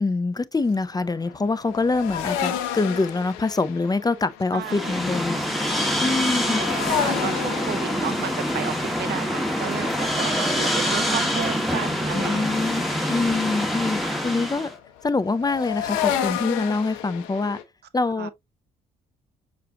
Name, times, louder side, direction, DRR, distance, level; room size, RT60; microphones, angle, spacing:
voice 1, 0.0-5.4 6.0-6.6 12.1-14.7 15.0-17.6 17.9-18.3, left 3 dB, 20° left, 0.5 m, -25 dB
sound 1, 0.6-11.9 12.2-17.6, left 9 dB, 85° left, 0.7 m, -32 dB
voice 2, 4.5-4.9 6.4-12.6 18.2-18.3, right 9 dB, 55° right, 0.6 m, -33 dB
sound 2, 4.6-14.7, equal, ahead, 1.5 m, -25 dB
6.5 x 2.5 x 2.7 m
hypercardioid pair, 50°, 20 cm